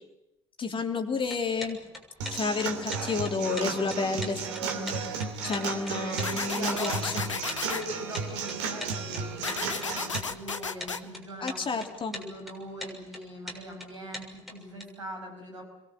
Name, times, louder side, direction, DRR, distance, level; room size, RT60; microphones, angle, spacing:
voice 1, 0.6-1.8 2.3-5.0 5.4-7.3 11.4-12.1, left 4 dB, 35° left, 5 dB, 3.4 m, -31 dB
sound 1, 1.2-14.8, left 1 dB, ahead, 6.7 m, -41 dB
Human voice / Acoustic guitar / Drum, 2.2-10.2, right 5 dB, 65° right, 2.8 m, -34 dB
sound 2, 6.2-7.8 9.4-11.0, left 5 dB, 85° left, 1.0 m, -33 dB
voice 2, 6.3-7.3 7.7-15.6, equal, 80° right, 1 dB, 5.9 m, -42 dB
29.0 x 23.0 x 7.8 m, 0.89 s
figure-of-eight pair, 55°, 16 cm